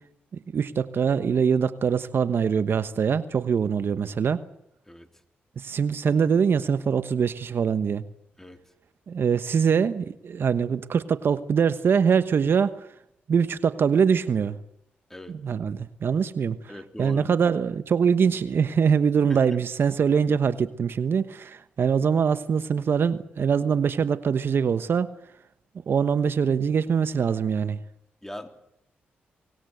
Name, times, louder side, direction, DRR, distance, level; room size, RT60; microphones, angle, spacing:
voice 1, 0.5-4.4 5.6-8.0 9.1-12.8 13.3-14.6 15.3-16.6 17.0-25.1 25.9-27.8, right 6 dB, 60° right, 13 dB, 1.2 m, -23 dB
voice 2, 16.7-17.3 19.3-19.5 28.2-28.5, left 1 dB, 10° left, 6 dB, 3.5 m, -40 dB
25.0 x 19.5 x 8.0 m, 0.80 s
cardioid pair, 55°, 4 cm